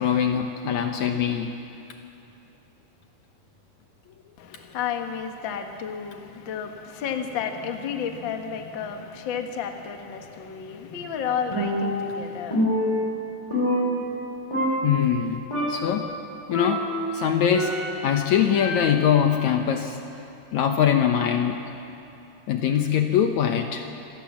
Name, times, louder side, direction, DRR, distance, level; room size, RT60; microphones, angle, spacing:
voice 1, 0.0-1.5 14.8-15.4 15.7-16.1 16.5-16.8 17.1-17.7 18.0-20.0 20.5-21.6 22.5-23.8, left 9 dB, 70° left, 5 dB, 2.1 m, -22 dB
voice 2, 4.4-12.6, left 7 dB, 45° left, 5 dB, 1.7 m, -32 dB
Percussion, 11.5-12.2 12.5-14.3 14.5-15.2 15.5-16.0 16.5-18.1 18.5-19.2, equal, 10° left, 4.6 m, -26 dB
26.0 x 18.0 x 7.3 m, 2.9 s
omnidirectional pair, 3.8 m